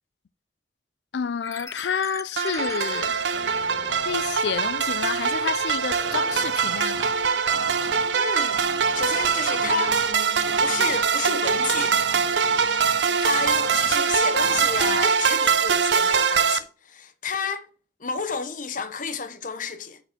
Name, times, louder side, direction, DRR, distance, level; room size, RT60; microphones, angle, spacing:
voice 1, 1.1-3.1 4.0-7.1, left 7 dB, 70° left, 0.4 m, -29 dB
sound 1, 1.4-15.1, left 3 dB, 15° left, 0.5 m, -41 dB
sound 2, 2.4-16.6, right 6 dB, 80° right, 0.6 m, -23 dB
voice 2, 8.1-8.6 8.9-10.0 10.6-12.0 13.2-17.7 18.0-20.0, left 5 dB, 45° left, 0.9 m, -31 dB
sound 3, 9.6-15.5, equal, 60° right, 2.4 m, -46 dB
6.7 x 4.3 x 5.8 m
head